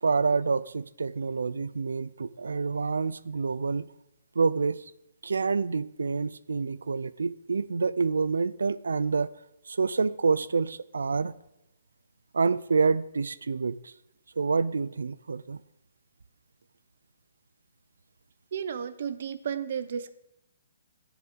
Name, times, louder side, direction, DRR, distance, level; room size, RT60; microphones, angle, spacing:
voice 1, 0.0-3.9 4.3-4.8 5.2-9.3 9.7-11.3 12.3-13.9 14.4-15.6, right 4 dB, 90° right, 18 dB, 0.6 m, -27 dB
voice 2, 18.5-20.1, right 7 dB, 60° right, 12 dB, 1.1 m, -33 dB
10.5 x 7.3 x 9.5 m, 0.85 s
hypercardioid pair, 150°, 0 cm